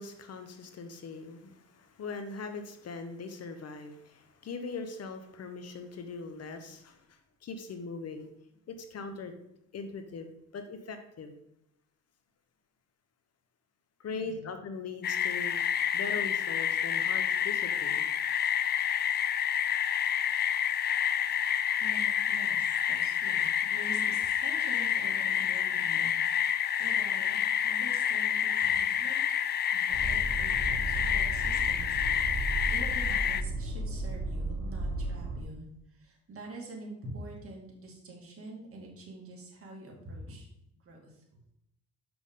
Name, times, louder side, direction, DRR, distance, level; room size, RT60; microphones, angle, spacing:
voice 1, 0.0-8.3 8.7-9.3 9.7-11.4 14.0-15.6 15.9-18.1, left 4 dB, 55° left, 7 dB, 1.0 m, -41 dB
voice 2, 14.1-14.5 21.8-29.2 29.7-32.0 32.3-40.5 40.8-41.2, right 2 dB, 45° right, -1 dB, 2.3 m, -46 dB
sound 1, 15.0-33.4, left 9 dB, 35° left, 0.4 m, -29 dB
sound 2, 29.9-35.4, right 2 dB, 90° right, 1.6 m, -34 dB
6.9 x 6.0 x 3.7 m, 0.81 s
cardioid pair, 90°, 30 cm